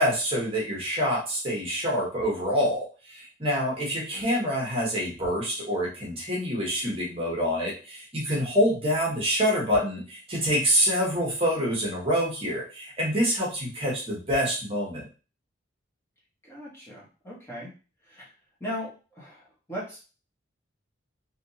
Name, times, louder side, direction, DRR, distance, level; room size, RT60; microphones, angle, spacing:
voice 1, 0.0-15.0, equal, 30° right, -3 dB, 1.2 m, -26 dB
voice 2, 16.4-17.7 18.0-18.3 18.6-20.0, equal, 15° left, -6 dB, 1.2 m, -38 dB
3.4 x 2.8 x 2.8 m, 0.33 s
head